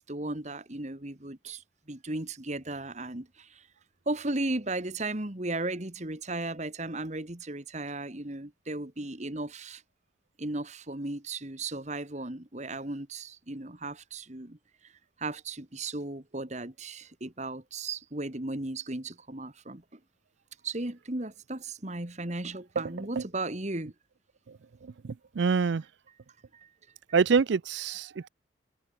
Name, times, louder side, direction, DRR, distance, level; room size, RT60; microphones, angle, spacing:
voice 1, 0.0-3.7 4.1-9.8 10.4-14.6 14.8-14.9 15.2-20.0 20.6-23.9 26.5-26.7, right 2 dB, 35° right, 1.8 m, -36 dB
voice 2, 25.0-25.8 27.1-28.3, right 5 dB, 65° right, 0.4 m, -26 dB
head